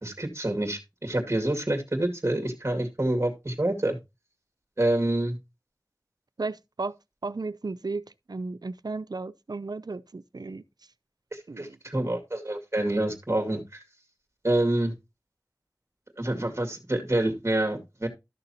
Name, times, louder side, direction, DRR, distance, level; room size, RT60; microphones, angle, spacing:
voice 1, 0.0-4.0 4.8-5.4 11.3-13.8 14.4-14.9 16.2-18.1, right 1 dB, 40° right, 2.3 m, -27 dB
voice 2, 6.4-6.9 7.2-10.6 11.5-11.8, right 3 dB, 80° right, 0.5 m, -34 dB
13.0 x 6.7 x 2.8 m
wide cardioid pair, 40°, 7 cm